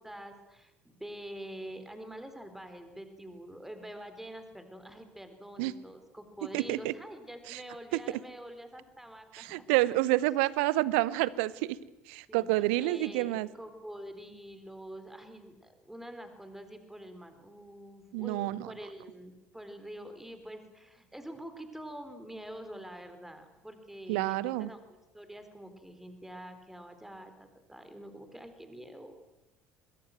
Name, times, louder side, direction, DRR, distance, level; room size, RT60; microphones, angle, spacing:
voice 1, 0.0-9.9 12.3-12.5 12.8-29.1, right 1 dB, 5° right, 8 dB, 4.1 m, -46 dB
voice 2, 6.5-6.9 7.5-7.6 9.3-11.8 12.1-13.5 18.1-18.7 24.1-24.7, right 18 dB, 65° right, 20 dB, 0.9 m, -28 dB
23.5 x 21.5 x 7.8 m, 1.0 s
figure-of-eight pair, 60°, 7 cm